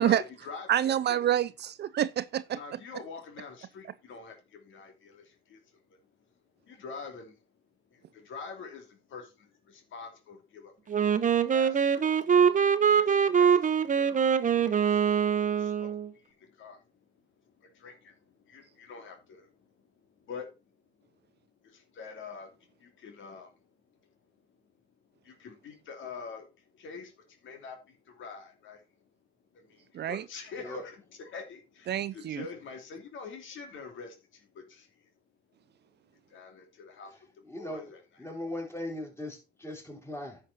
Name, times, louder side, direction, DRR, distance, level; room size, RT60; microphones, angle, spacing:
voice 1, 0.0-1.4 2.5-6.0 6.7-7.3 7.9-8.8 9.1-9.2 9.7-11.2 11.5-12.2 12.8-16.8 17.6-19.7 20.1-20.5 21.6-23.6 25.2-26.5 26.7-28.8 29.5-35.1 36.3-38.0, left 5 dB, 70° left, 2.8 m, -46 dB
voice 2, 0.7-2.6 29.9-30.2 31.9-32.4, right 11 dB, 55° right, 0.5 m, -27 dB
Wind instrument woodwind instrument, 10.9-16.1, right 7 dB, 40° right, 0.9 m, -24 dB
voice 3, 37.4-37.8 38.2-40.4, left 1 dB, 10° left, 4.1 m, -39 dB
10.5 x 6.5 x 4.1 m
cardioid pair, 85°, 21 cm